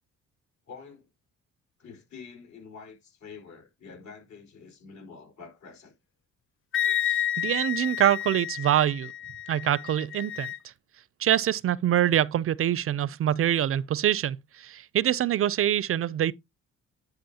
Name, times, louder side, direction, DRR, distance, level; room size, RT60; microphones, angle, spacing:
voice 1, 0.7-1.1 1.8-5.9, left 5 dB, 65° left, 4.6 m, -47 dB
Wind instrument woodwind instrument, 6.7-10.6, left 11 dB, 45° left, 0.5 m, -30 dB
voice 2, 7.4-9.1 9.5-10.5 11.2-16.3, right 11 dB, 50° right, 0.4 m, -25 dB
10.5 x 5.2 x 2.8 m
cardioid pair, 90°, 30 cm